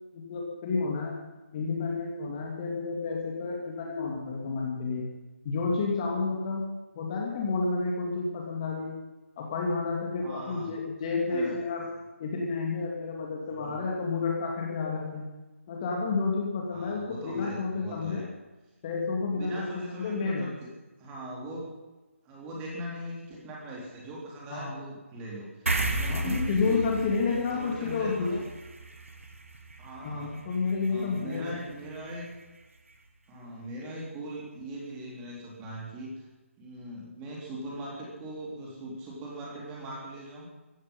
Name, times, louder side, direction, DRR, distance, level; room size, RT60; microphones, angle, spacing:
voice 1, 0.1-1.2 1.5-5.1 5.4-6.6 6.9-9.0 9.4-11.9 12.2-15.3 15.7-18.2 18.8-20.5 24.5-24.7 26.1-28.4 30.0-31.5, left 4 dB, 25° left, -1 dB, 2.7 m, -30 dB
voice 2, 10.2-10.7 11.3-11.6 13.6-13.8 16.7-18.3 19.3-20.7 21.0-21.8 22.2-26.9 27.3-28.4 29.8-30.4 30.9-32.3 33.3-36.2 36.6-40.5, right 1 dB, 15° right, -3 dB, 3.8 m, -40 dB
sound 1, 25.7-32.4, right 2 dB, 65° right, 2.6 m, -35 dB
16.0 x 15.0 x 5.6 m, 1.1 s
figure-of-eight pair, 155°, 8 cm